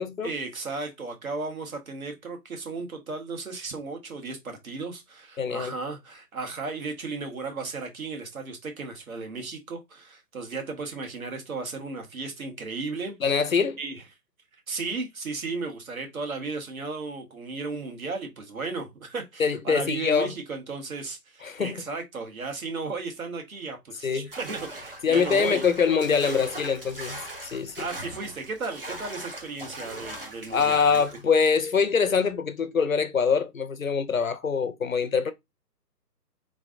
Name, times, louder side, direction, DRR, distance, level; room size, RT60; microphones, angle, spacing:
voice 1, 0.2-13.4 13.8-14.0 14.7-25.7 27.7-31.0, right 4 dB, 55° right, 1.3 m, -35 dB
voice 2, 5.4-5.7 13.2-13.8 19.4-20.3 21.4-21.8 24.0-24.3 25.0-27.8 30.5-35.3, left 6 dB, 55° left, 0.6 m, -24 dB
sound 1, 24.3-31.2, right 1 dB, 35° right, 0.7 m, -39 dB
3.8 x 3.2 x 2.5 m
hypercardioid pair, 175°, 49 cm